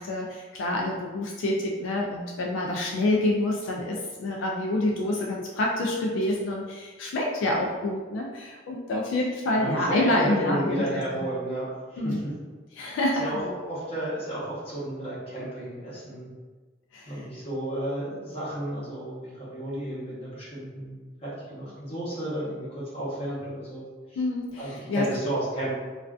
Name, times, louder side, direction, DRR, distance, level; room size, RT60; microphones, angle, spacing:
voice 1, 0.0-10.8 11.1-11.2 12.0-12.2 12.8-13.5 16.9-17.2 24.2-25.0, left 1 dB, 75° left, -1 dB, 0.3 m, -27 dB
voice 2, 9.6-11.7 11.9-12.3 12.9-16.3 17.1-23.8 24.1-24.2 24.6-25.7, right 1 dB, 30° left, -9 dB, 0.8 m, -32 dB
2.4 x 2.3 x 2.3 m, 1.4 s
head